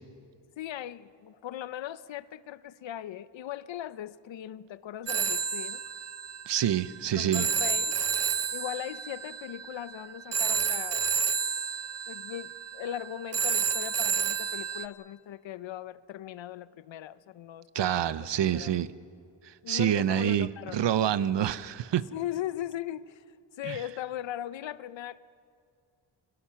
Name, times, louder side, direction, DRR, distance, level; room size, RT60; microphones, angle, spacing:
voice 1, 0.6-5.8 7.1-8.0 8.5-11.1 12.1-18.7 19.6-20.9 22.1-23.2 23.6-25.2, left 11 dB, 90° left, 0.7 m, -39 dB
Telephone, 5.1-14.9, right 6 dB, 35° right, 0.8 m, -30 dB
voice 2, 6.5-7.5 17.7-18.9 19.4-22.1 23.6-23.8, right 10 dB, 70° right, 0.8 m, -27 dB
30.0 x 22.5 x 5.8 m
wide cardioid pair, 165°, 44 cm